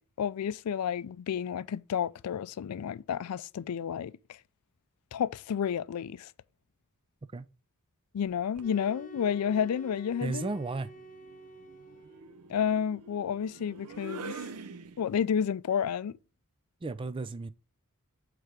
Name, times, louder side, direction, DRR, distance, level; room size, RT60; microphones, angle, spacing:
voice 1, 0.2-4.1 5.1-6.3 8.1-10.5 12.5-14.3 15.0-16.2, left 8 dB, 90° left, 0.4 m, -31 dB
sound 1, 8.3-8.8 10.1-15.4, right 4 dB, 90° right, 0.6 m, -46 dB
sound 2, 8.6-12.5, right 2 dB, 35° left, 0.7 m, -50 dB
voice 2, 10.2-10.9 16.8-17.5, right 3 dB, 25° right, 0.4 m, -34 dB
8.0 x 3.4 x 4.9 m
head